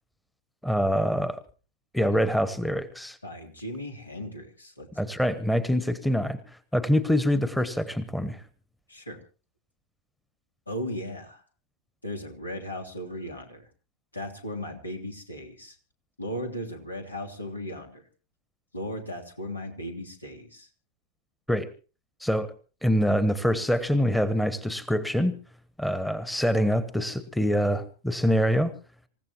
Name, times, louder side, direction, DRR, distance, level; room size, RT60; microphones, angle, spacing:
voice 1, 0.6-1.4 1.9-3.2 5.0-6.4 6.7-8.4 21.5-21.7 22.2-22.5 22.8-25.4 25.8-28.7, equal, 5° left, 13 dB, 1.2 m, -25 dB
voice 2, 3.2-4.9 8.9-9.2 10.7-11.4 12.0-13.7 14.1-15.8 16.2-18.0 18.7-20.7, equal, 80° left, 3 dB, 3.1 m, -36 dB
27.0 x 15.5 x 3.0 m, 0.37 s
figure-of-eight pair, 90°, 0 cm